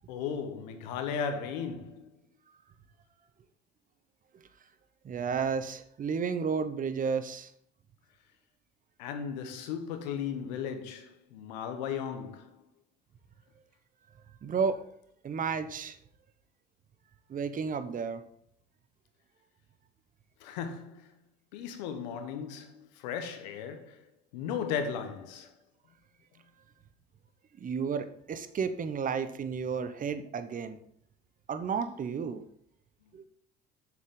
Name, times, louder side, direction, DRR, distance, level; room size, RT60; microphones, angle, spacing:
voice 1, 0.1-2.2 9.0-12.6 20.4-21.1 21.5-24.0 24.3-25.5, left 7 dB, 85° left, 1.1 m, -36 dB
voice 2, 5.0-7.5 14.4-14.8 15.2-16.0 17.3-18.2 27.6-30.8 31.5-32.4 33.1-33.2, right 6 dB, 40° right, 0.9 m, -32 dB
7.2 x 6.5 x 3.8 m
hypercardioid pair, 70°, 21 cm